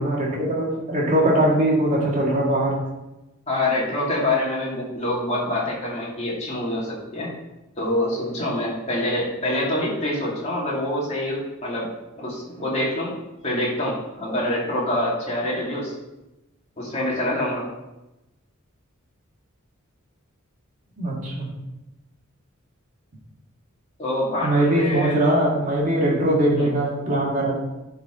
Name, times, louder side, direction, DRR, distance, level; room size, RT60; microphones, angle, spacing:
voice 1, 0.0-2.8 21.0-21.5 24.4-27.6, right 1 dB, 35° right, -4 dB, 2.2 m, -21 dB
voice 2, 3.5-7.3 7.8-11.9 12.2-13.1 13.4-15.9 16.8-17.7 24.0-25.2 26.5-26.7, left 1 dB, 30° left, -5 dB, 2.5 m, -26 dB
11.0 x 4.9 x 3.8 m, 0.98 s
head